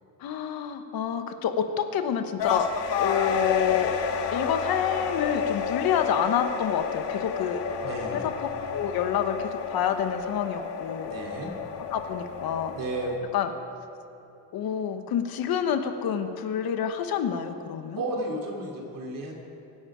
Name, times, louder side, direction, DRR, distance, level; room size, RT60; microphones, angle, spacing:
voice 1, 0.2-2.7 3.0-3.9 4.3-7.6 8.7-11.1 11.9-12.7 13.3-13.5 14.5-18.0, left 8 dB, 60° left, 8 dB, 1.1 m, -28 dB
sound 1, 2.4-13.2, left 6 dB, 90° left, 1.6 m, -31 dB
voice 2, 7.8-8.2 11.1-11.5 12.7-13.1 18.0-19.3, right 2 dB, 50° right, 0 dB, 3.2 m, -33 dB
24.0 x 10.0 x 5.0 m, 2.9 s
cardioid pair, 170°, 41 cm